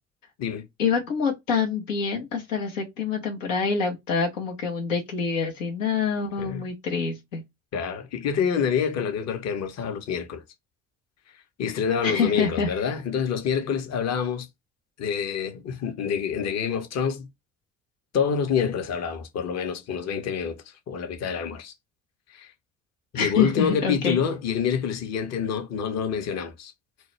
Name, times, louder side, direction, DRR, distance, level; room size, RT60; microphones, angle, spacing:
voice 1, 0.8-7.4 12.0-12.7 23.1-24.2, left 6 dB, 85° left, 0.6 m, -26 dB
voice 2, 7.7-10.4 11.6-14.5 15.0-17.3 18.1-20.6 20.9-21.7 22.3-22.5 23.1-26.7, left 7 dB, 45° left, 0.7 m, -27 dB
2.2 x 2.0 x 3.0 m
hypercardioid pair, 50°, 38 cm